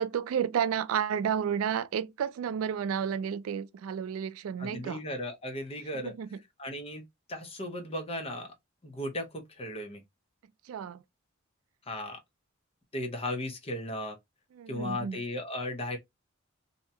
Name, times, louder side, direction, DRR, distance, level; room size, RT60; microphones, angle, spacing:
voice 1, 0.0-5.0 5.9-6.4 10.7-11.0 14.5-15.2, right 8 dB, 80° right, 0.3 m, -31 dB
voice 2, 4.6-6.1 6.6-7.0 7.3-8.5 8.8-10.0 11.9-12.2 12.9-14.2 14.7-16.0, left 1 dB, 30° left, 0.7 m, -36 dB
2.7 x 2.2 x 2.7 m
head